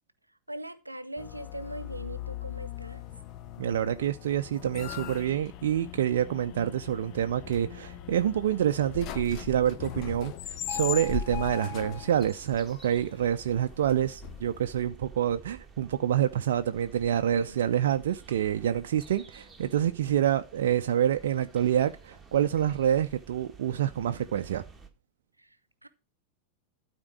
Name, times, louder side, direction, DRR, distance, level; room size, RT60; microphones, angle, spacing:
voice 1, 0.5-3.0 17.3-17.6 25.4-25.5 25.8-25.9, right 1 dB, 85° right, 0.8 m, -40 dB
sound 1, 1.2-14.8, left 11 dB, 40° left, 0.7 m, -39 dB
voice 2, 3.6-24.6, right 10 dB, 60° right, 0.6 m, -27 dB
sound 2, 12.2-24.9, right 5 dB, 10° right, 1.6 m, -51 dB
12.0 x 4.4 x 6.0 m
figure-of-eight pair, 90°, 0 cm